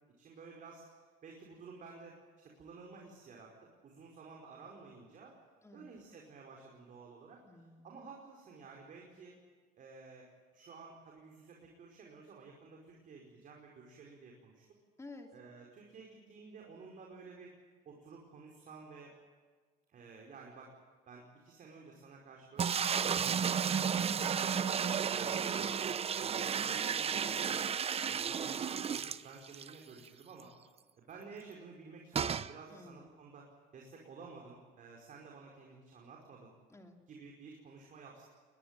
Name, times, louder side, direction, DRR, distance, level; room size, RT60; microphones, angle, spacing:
voice 1, 0.2-0.9 1.2-2.2 2.4-5.4 5.7-7.4 7.8-9.4 9.8-14.6 15.3-17.5 17.8-19.1 19.9-20.7 21.1-23.5 24.0-25.9 26.2-27.7 28.1-30.5 30.9-33.5 33.7-36.5 37.1-38.2, right 4 dB, 50° right, -1 dB, 4.9 m, -53 dB
voice 2, 5.6-5.9 7.5-7.9 15.0-15.3 32.7-33.2 36.7-37.0, left 2 dB, 15° left, 4 dB, 2.9 m, -53 dB
sound 1, 22.6-29.7 30.1-30.2 30.4-30.5 32.1-32.5, right 7 dB, 35° right, 0.8 m, -33 dB
22.0 x 20.5 x 9.0 m, 1.5 s
cardioid pair, 110°, 17 cm